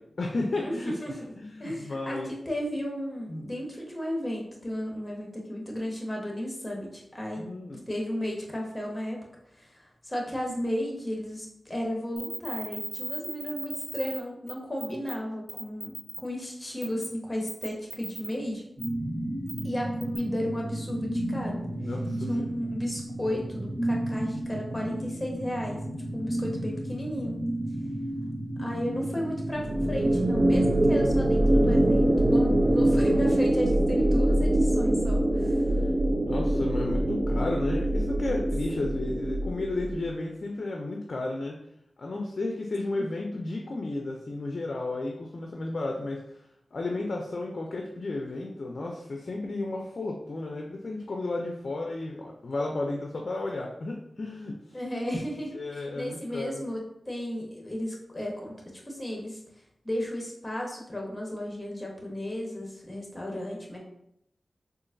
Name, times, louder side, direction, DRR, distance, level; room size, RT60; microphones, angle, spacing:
voice 1, 0.0-1.0 1.4-2.3 3.3-3.5 7.4-7.8 21.8-22.6 36.2-41.6 42.0-46.2 46.7-54.8 55.5-56.6, left 2 dB, 65° left, 1 dB, 0.4 m, -33 dB
voice 2, 0.5-1.2 1.6-9.2 9.6-18.7 19.6-21.6 22.3-25.8 26.1-27.4 28.6-35.6 54.7-56.8 57.1-59.4 59.8-63.8, equal, 20° left, -1 dB, 1.1 m, -34 dB
sound 1, 12.2-14.2 14.5-14.6 14.8-15.1 15.5-16.2 16.8-17.0 17.5-18.3 18.8-18.9 19.5-19.6 20.0-20.2, right 1 dB, 25° right, 0.8 m, -37 dB
sound 2, 18.8-33.1, right 1 dB, 5° right, 1.1 m, -33 dB
sound 3, 29.6-40.1, right 1 dB, 40° right, 0.4 m, -24 dB
3.8 x 2.4 x 2.5 m, 0.77 s
cardioid pair, 45°, 0 cm